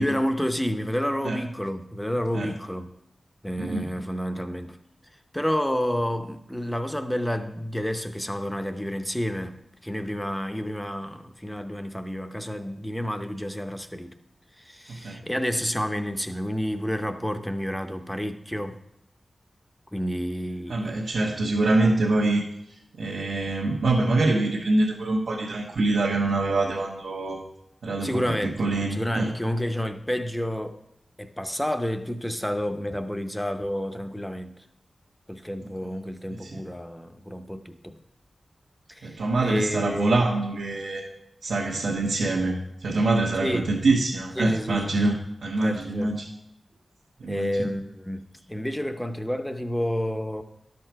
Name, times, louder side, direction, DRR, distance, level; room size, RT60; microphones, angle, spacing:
voice 1, 0.0-2.9 3.4-4.8 5.3-14.1 14.6-18.8 19.9-21.1 28.0-28.6 28.9-30.8 31.2-34.6 35.3-38.0 38.9-40.2 43.4-43.7 44.4-45.2 45.6-46.1 47.3-48.2 48.5-50.4, equal, 5° left, 0.6 m, -30 dB
voice 2, 3.6-3.9 14.9-15.2 20.7-22.4 23.0-27.4 27.8-29.3 35.8-35.9 36.4-36.6 39.0-41.1 41.4-45.2 45.4-46.3 47.2-47.7, right 2 dB, 85° right, 1.2 m, -25 dB
11.5 x 6.7 x 4.5 m
wide cardioid pair, 115°, 0 cm